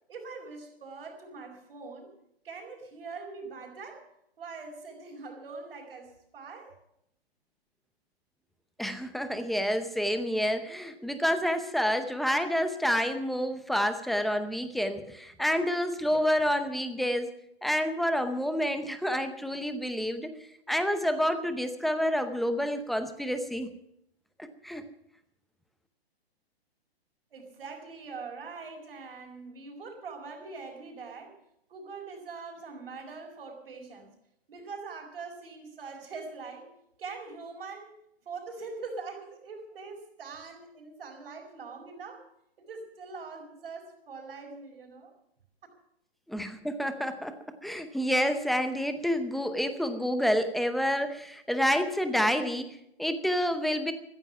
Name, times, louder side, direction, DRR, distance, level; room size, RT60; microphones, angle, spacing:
voice 1, 0.1-2.1 2.4-4.1 4.4-6.7 27.3-31.4 31.7-34.1 34.5-36.7 37.0-37.9 38.2-42.3 42.6-45.1, right 4 dB, 60° right, -3 dB, 4.7 m, -43 dB
voice 2, 8.8-17.3 17.6-20.3 20.7-23.7 24.6-24.8 46.3-47.4 47.6-53.9, equal, ahead, 9 dB, 0.7 m, -28 dB
15.5 x 14.5 x 5.8 m, 0.76 s
hypercardioid pair, 140°, 32 cm